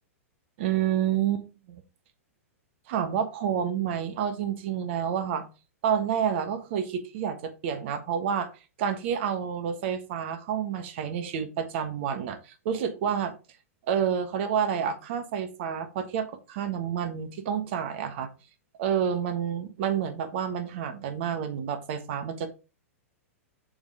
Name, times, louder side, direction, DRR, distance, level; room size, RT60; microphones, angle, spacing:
voice 1, 0.6-1.8 2.9-5.4 5.8-8.5 8.8-13.3 13.9-18.3 18.8-22.5, right 8 dB, 50° right, 10 dB, 1.3 m, -29 dB
6.9 x 3.9 x 4.9 m, 0.32 s
figure-of-eight pair, 105°, 8 cm